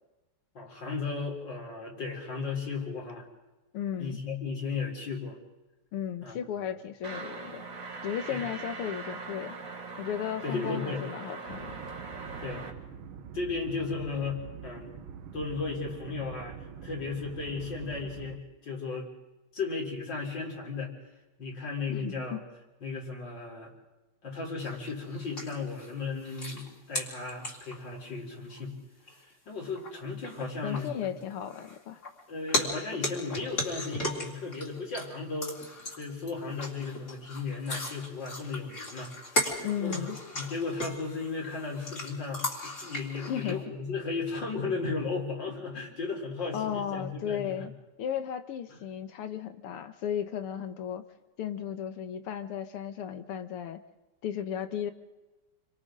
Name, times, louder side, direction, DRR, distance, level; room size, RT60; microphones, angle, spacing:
voice 1, 0.5-3.3 4.0-5.4 6.2-6.4 8.3-8.5 10.4-11.0 12.4-12.6 13.3-14.9 15.3-19.1 19.5-20.9 21.4-22.4 22.8-23.7 24.2-28.8 29.2-31.1 32.3-39.1 39.8-40.1 40.3-47.7 48.7-48.8, left 4 dB, 55° left, -1 dB, 4.4 m, -35 dB
voice 2, 3.7-4.2 5.9-7.6 8.0-9.5 10.0-11.8 21.9-22.4 30.6-32.0 39.6-40.2 43.2-43.6 46.5-47.7 48.0-51.0 51.4-53.8 54.2-54.9, left 9 dB, 85° left, 9 dB, 2.1 m, -35 dB
sound 1, 7.0-12.7, right 4 dB, 40° right, 2.0 m, -41 dB
sound 2, 11.5-18.4, right 7 dB, 70° right, 1.8 m, -45 dB
sound 3, 24.6-28.0 28.6-28.7 29.1-29.2 29.6-29.9 30.2-32.2 32.5-35.1 35.4-43.6, left 1 dB, 30° left, 3.8 m, -36 dB
29.5 x 24.5 x 3.8 m, 1.1 s
omnidirectional pair, 2.4 m